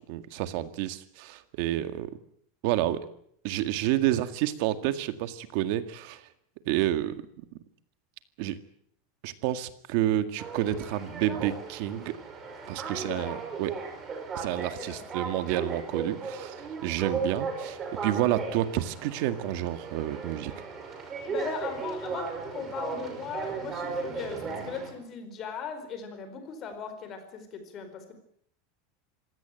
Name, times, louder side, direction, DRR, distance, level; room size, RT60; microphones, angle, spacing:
voice 1, 0.0-2.1 2.6-3.1 3.4-6.3 6.7-7.1 8.4-8.6 9.2-12.2 12.7-13.7 14.4-20.5, right 13 dB, 50° right, 11 dB, 1.9 m, -29 dB
sound 1, 10.4-24.9, right 5 dB, 20° right, 5.3 m, -36 dB
voice 2, 12.9-13.3 14.7-15.0 21.3-28.1, left 6 dB, 30° left, 9 dB, 4.5 m, -38 dB
26.0 x 16.5 x 9.0 m, 0.67 s
supercardioid pair, 170°, 0 cm